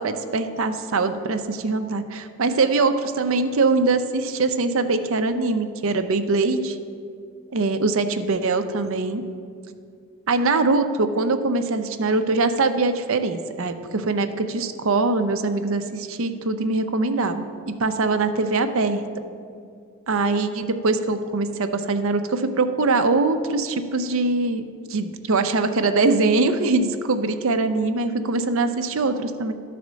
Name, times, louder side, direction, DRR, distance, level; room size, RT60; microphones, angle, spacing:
voice 1, 0.0-6.8 7.5-9.2 10.3-17.4 17.8-19.0 20.1-29.5, right 3 dB, 60° right, 8 dB, 0.6 m, -22 dB
11.5 x 4.2 x 6.2 m, 2.3 s
head